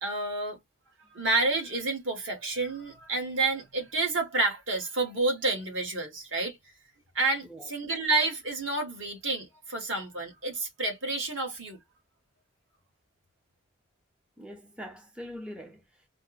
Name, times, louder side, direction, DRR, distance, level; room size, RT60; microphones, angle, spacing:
voice 1, 0.0-0.6 1.0-6.6 7.1-11.8, right 2 dB, 65° right, 1.4 m, -29 dB
voice 2, 14.4-16.1, equal, 5° right, 0.5 m, -43 dB
4.3 x 2.1 x 2.3 m
head